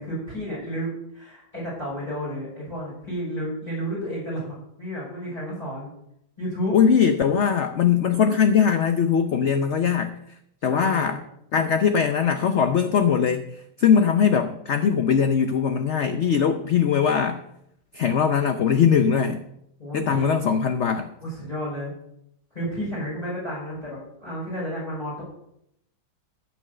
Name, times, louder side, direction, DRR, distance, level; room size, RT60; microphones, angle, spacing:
voice 1, 0.0-5.9 6.4-6.8 10.7-11.2 19.8-20.4 21.2-21.9 22.5-25.2, equal, 20° left, -6 dB, 5.4 m, -31 dB
voice 2, 6.7-10.2 10.6-11.2 11.5-13.5 13.8-17.4 17.9-19.4 19.9-21.1, left 7 dB, 60° left, 8 dB, 0.7 m, -21 dB
14.0 x 6.2 x 6.7 m, 0.77 s
omnidirectional pair, 1.9 m